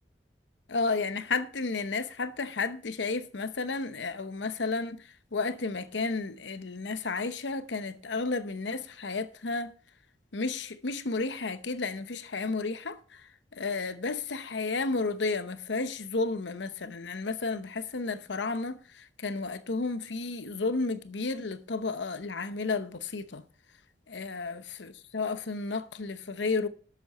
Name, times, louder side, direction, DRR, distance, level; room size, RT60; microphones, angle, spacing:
voice 1, 0.7-9.7 10.3-23.5 24.1-26.7, left 3 dB, 85° left, 0.9 m, -32 dB
12.0 x 8.5 x 4.2 m
head